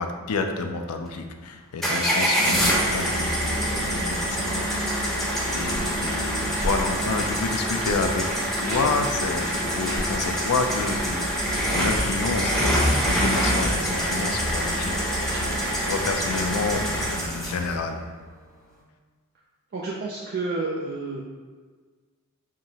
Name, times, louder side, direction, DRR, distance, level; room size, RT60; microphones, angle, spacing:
voice 1, 0.0-5.0 5.5-8.2 8.6-15.1 15.4-18.0, left 4 dB, 80° left, 5 dB, 0.4 m, -29 dB
sound 1, 1.8-17.7, equal, ahead, 0.7 m, -25 dB
sound 2, 5.3-17.4, equal, 65° right, 0.8 m, -38 dB
voice 2, 19.7-21.2, right 3 dB, 45° right, -3 dB, 0.4 m, -30 dB
4.9 x 2.9 x 2.8 m, 1.5 s
head